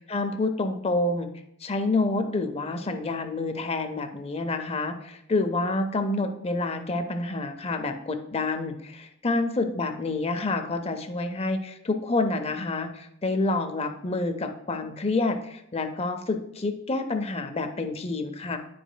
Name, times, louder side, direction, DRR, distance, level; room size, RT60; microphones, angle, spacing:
voice 1, 0.1-1.3 1.6-18.6, left 2 dB, 30° left, 7 dB, 0.5 m, -28 dB
9.6 x 5.0 x 2.2 m, 0.77 s
head